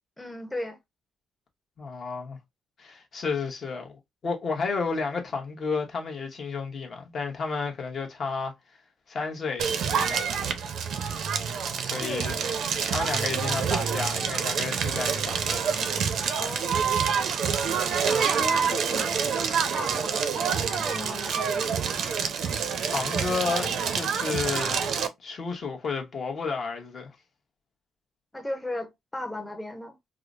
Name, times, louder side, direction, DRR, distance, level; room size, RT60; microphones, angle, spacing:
voice 1, 0.2-0.8 12.0-12.2 16.4-17.0 18.0-19.3 19.7-21.8 28.3-30.0, left 1 dB, 10° left, 0.8 m, -36 dB
voice 2, 1.8-2.4 2.8-8.5 9.1-9.7 9.9-10.6 11.8-12.3 12.9-16.0 17.7-18.0 22.9-24.9 25.2-27.1, left 4 dB, 40° left, 1.0 m, -32 dB
Crackle, 9.6-25.1, right 6 dB, 60° right, 0.5 m, -27 dB
4.7 x 2.0 x 2.5 m
cardioid pair, 140°, 0 cm